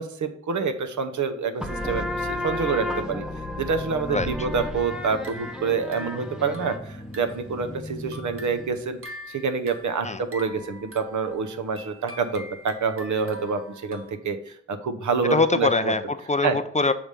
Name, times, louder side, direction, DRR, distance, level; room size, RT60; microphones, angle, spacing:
voice 1, 0.0-3.2 3.6-9.0 9.3-15.9 16.4-16.6, right 5 dB, 70° right, 8 dB, 0.9 m, -27 dB
sound 1, 1.6-8.9, left 1 dB, ahead, 0.7 m, -33 dB
sound 2, 4.9-7.6 7.9-14.1, equal, 45° right, 1.0 m, -44 dB
voice 2, 15.3-16.9, left 3 dB, 25° left, 10 dB, 0.4 m, -23 dB
7.0 x 3.3 x 5.2 m, 0.69 s
wide cardioid pair, 95°, 31 cm